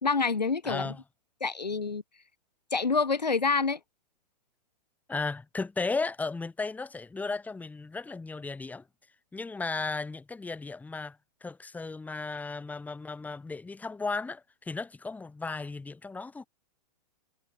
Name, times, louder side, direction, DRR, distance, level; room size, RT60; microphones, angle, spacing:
voice 1, 0.0-0.9 1.4-2.0 2.7-3.8, left 4 dB, 80° left, 2.7 m, -27 dB
voice 2, 0.6-1.0 5.1-8.8 9.3-16.5, left 3 dB, 5° left, 2.0 m, -35 dB
figure-of-eight pair, 105°, 21 cm